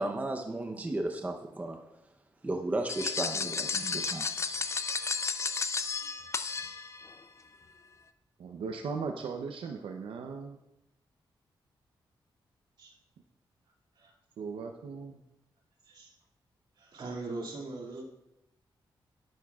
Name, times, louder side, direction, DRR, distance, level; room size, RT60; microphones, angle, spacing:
voice 1, 0.0-1.8 2.4-4.6, right 2 dB, 15° right, 3 dB, 0.8 m, -34 dB
sound 1, 2.9-7.2, left 5 dB, 35° left, 0.5 m, -33 dB
voice 2, 8.4-10.6 14.4-15.2, right 5 dB, 85° right, 3 dB, 0.7 m, -38 dB
voice 3, 15.8-16.2 16.7-18.0, right 3 dB, 60° right, -1 dB, 2.4 m, -41 dB
12.5 x 11.0 x 2.4 m, 0.90 s
wide cardioid pair, 135°, 9 cm